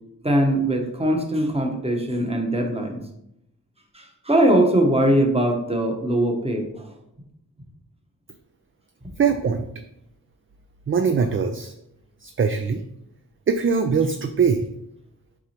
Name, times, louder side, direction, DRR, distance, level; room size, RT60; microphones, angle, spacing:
voice 1, 0.2-3.0 3.9-6.9, right 1 dB, 15° right, 2 dB, 1.0 m, -21 dB
voice 2, 9.2-9.7 10.9-11.7 12.2-12.8 13.5-14.6, right 6 dB, 35° right, 7 dB, 0.4 m, -21 dB
4.7 x 3.9 x 2.9 m, 0.80 s
cardioid pair, 45°, 37 cm